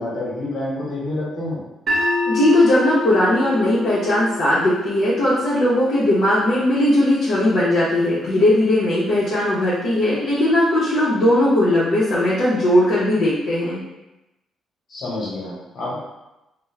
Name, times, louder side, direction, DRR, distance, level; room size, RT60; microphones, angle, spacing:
voice 1, 0.0-1.6 14.9-15.9, left 1 dB, 55° left, -5 dB, 1.0 m, -28 dB
sound 1, 1.9-8.0, left 2 dB, 50° right, 0.8 m, -29 dB
voice 2, 2.3-13.8, left 1 dB, 75° left, -9 dB, 0.6 m, -18 dB
2.3 x 2.0 x 3.1 m, 0.95 s
cardioid pair, 90°, 0 cm